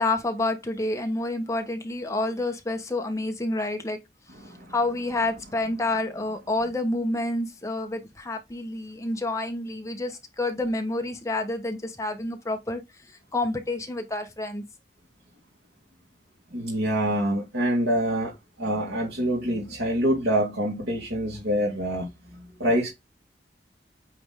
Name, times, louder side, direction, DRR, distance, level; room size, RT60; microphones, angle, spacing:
voice 1, 0.0-4.0 4.7-14.6, left 2 dB, 15° left, 1.2 m, -29 dB
voice 2, 16.5-22.1 22.4-22.9, right 1 dB, 80° right, 2.4 m, -26 dB
8.7 x 3.4 x 3.7 m
head